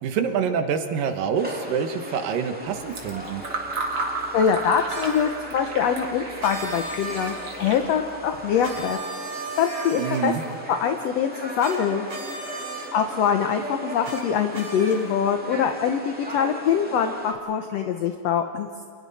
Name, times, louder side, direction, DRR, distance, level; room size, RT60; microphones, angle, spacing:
voice 1, 0.0-3.4 10.0-10.4, right 7 dB, 80° right, 6 dB, 3.0 m, -26 dB
sound 1, 1.3-17.3, equal, 5° right, 1.3 m, -38 dB
Fill (with liquid), 2.7-8.9, right 3 dB, 45° right, 2.8 m, -34 dB
voice 2, 4.3-9.0 9.6-10.3 10.7-12.1 12.9-18.8, left 7 dB, 70° left, 6 dB, 1.6 m, -24 dB
sound 2, 4.9-5.3 6.4-7.8 8.6-10.6 11.6-11.8 12.1-12.9 14.0-14.2 14.5-15.2, right 2 dB, 60° right, 5.8 m, -36 dB
29.5 x 28.0 x 4.2 m, 2.2 s
omnidirectional pair, 4.0 m